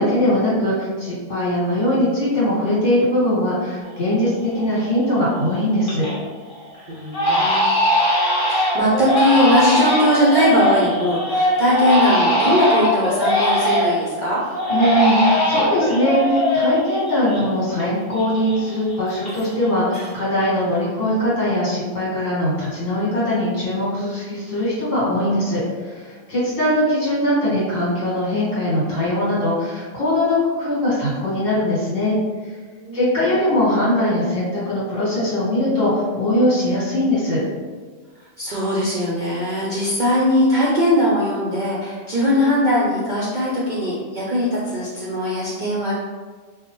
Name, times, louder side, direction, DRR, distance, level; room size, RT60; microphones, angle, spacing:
voice 1, 0.0-6.1 14.7-32.2 32.9-37.4, left 1 dB, 70° left, -8 dB, 1.8 m, -21 dB
Crying sobbing, 4.0-4.1 4.5-5.0 5.4-6.2 6.5-6.7 7.1-14.1 14.5-17.9 18.1-19.6 19.9-20.5, equal, 40° left, 1.5 m, -20 dB
voice 2, 6.8-7.7 8.5-14.4 32.8-33.2 38.4-45.9, left 1 dB, 55° right, -6 dB, 0.5 m, -20 dB
4.6 x 2.1 x 3.0 m, 1.4 s
omnidirectional pair, 1.4 m